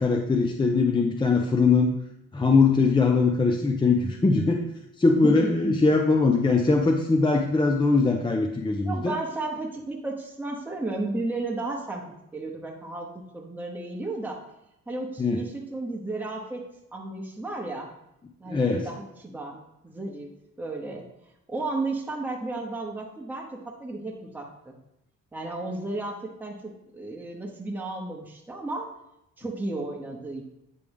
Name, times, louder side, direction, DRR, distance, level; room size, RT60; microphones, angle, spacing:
voice 1, 0.0-1.9 2.3-4.6 5.0-9.2 15.2-15.4 18.5-18.8, left 4 dB, 15° left, 3 dB, 0.5 m, -21 dB
voice 2, 5.2-5.7 8.8-12.0 12.3-14.4 14.9-17.9 18.4-20.3 20.6-21.0 21.5-24.7 25.3-28.9 29.4-30.5, right 2 dB, 5° right, -1 dB, 1.0 m, -33 dB
8.4 x 3.4 x 3.5 m, 0.83 s
cardioid pair, 90°, 30 cm